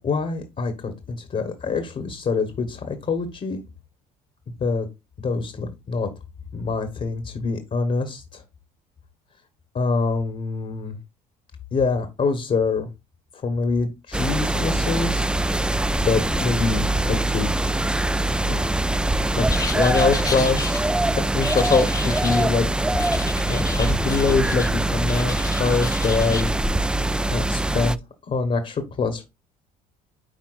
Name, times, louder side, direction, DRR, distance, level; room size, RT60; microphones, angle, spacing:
voice 1, 0.0-3.6 4.6-4.9 5.2-6.1 6.5-8.4 9.7-11.0 11.7-12.9 13.3-15.3 16.0-17.8 18.3-18.7 19.0-20.9 21.3-22.7 23.5-26.5 27.3-28.0 28.3-29.2, left 4 dB, 40° left, 8 dB, 1.2 m, -25 dB
sound 1, 14.1-28.0, right 1 dB, 5° right, 0.3 m, -23 dB
sound 2, 19.5-20.8 21.4-22.5 23.0-24.7 25.0-26.5, left 4 dB, 20° left, 0.7 m, -33 dB
10.0 x 4.1 x 2.4 m, 0.25 s
hypercardioid pair, 70°, 19 cm